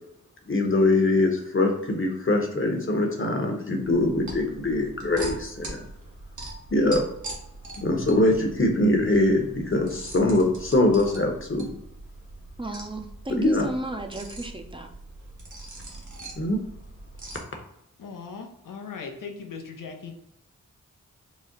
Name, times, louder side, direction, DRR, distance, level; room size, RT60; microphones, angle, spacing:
voice 1, 0.5-5.8 6.7-7.0 7.8-11.7 13.3-13.7 16.4-16.6, left 2 dB, 40° left, 3 dB, 1.0 m, -23 dB
sound 1, 3.8-17.4, right 2 dB, 65° right, 1.2 m, -42 dB
voice 2, 12.6-14.9, right 1 dB, 15° right, 5 dB, 0.6 m, -33 dB
voice 3, 18.0-20.1, left 5 dB, 80° left, 3 dB, 0.7 m, -38 dB
4.1 x 2.1 x 3.8 m, 0.81 s
cardioid pair, 40°, 32 cm